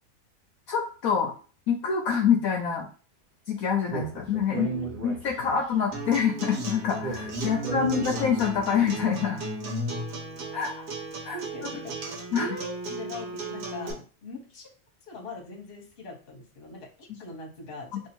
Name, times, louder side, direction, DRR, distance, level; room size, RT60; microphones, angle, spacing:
voice 1, 0.7-1.3 1.7-2.9 3.5-4.7 5.0-9.4 10.5-10.7 11.3-11.4 12.3-12.5, left 7 dB, 70° left, 1 dB, 1.0 m, -26 dB
Speech, 3.9-5.7 7.0-8.7, right 3 dB, 40° right, 0.8 m, -35 dB
voice 2, 4.5-4.9 7.4-7.5 11.3-11.9 12.4-14.7 15.0-18.0, left 2 dB, 40° left, 1 dB, 1.1 m, -41 dB
Acoustic guitar, 5.9-13.9, right 1 dB, 85° right, 1.6 m, -35 dB
3.1 x 2.7 x 4.3 m, 0.38 s
omnidirectional pair, 1.7 m